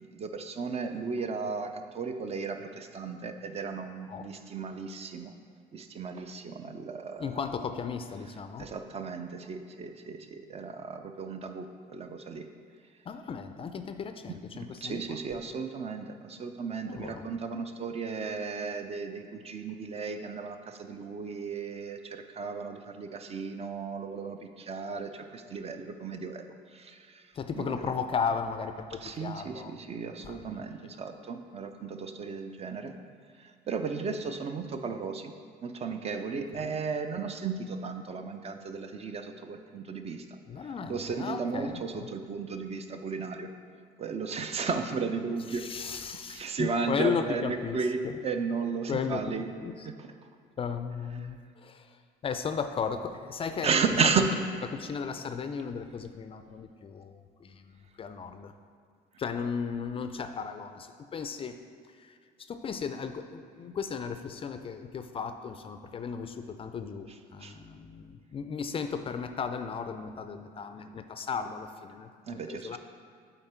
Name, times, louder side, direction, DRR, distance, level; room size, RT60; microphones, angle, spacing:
voice 1, 0.0-5.3 5.7-7.4 8.6-12.5 14.3-27.9 29.0-32.9 33.4-35.3 35.6-40.3 40.6-43.5 44.0-49.5 49.8-50.1 51.2-51.3 53.6-54.3 67.4-67.6 72.3-72.8, right 5 dB, 40° right, 7 dB, 0.5 m, -34 dB
voice 2, 7.2-8.7 13.1-15.0 16.9-17.2 27.3-29.7 30.2-30.6 36.6-36.8 40.5-42.1 45.5-47.8 48.0-48.2 48.9-49.2 49.6-49.7 50.6-52.0 52.2-53.8 54.2-54.3 54.7-58.5 59.2-61.6 62.0-62.2 62.5-72.8, left 6 dB, 35° left, 8 dB, 0.4 m, -35 dB
7.9 x 4.0 x 4.4 m, 2.2 s
cardioid pair, 110°, 17 cm